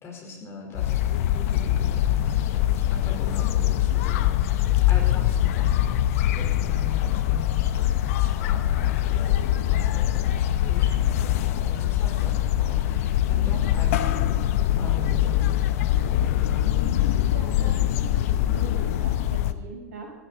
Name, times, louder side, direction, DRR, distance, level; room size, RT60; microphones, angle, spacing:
voice 1, 0.0-9.4 9.7-14.4 14.7-17.0, left 3 dB, 30° left, 0 dB, 4.7 m, -41 dB
sound 1, 0.7-19.5, left 12 dB, 60° left, 0.9 m, -23 dB
voice 2, 9.8-10.2 17.2-20.1, right 4 dB, 55° right, 1 dB, 4.9 m, -42 dB
18.0 x 13.5 x 4.3 m, 1.2 s
figure-of-eight pair, 90°, 9 cm